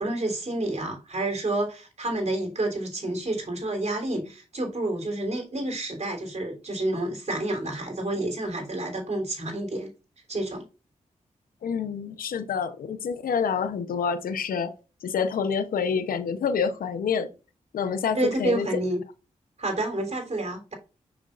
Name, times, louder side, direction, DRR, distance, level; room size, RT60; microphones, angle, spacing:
voice 1, 0.0-9.9 10.3-10.6 18.1-19.0 19.6-20.7, right 2 dB, 50° right, 3.5 m, -29 dB
voice 2, 11.6-14.7 15.0-17.3 17.7-18.7, left 6 dB, 85° left, 0.8 m, -27 dB
6.3 x 6.1 x 2.5 m
cardioid pair, 45°, 14 cm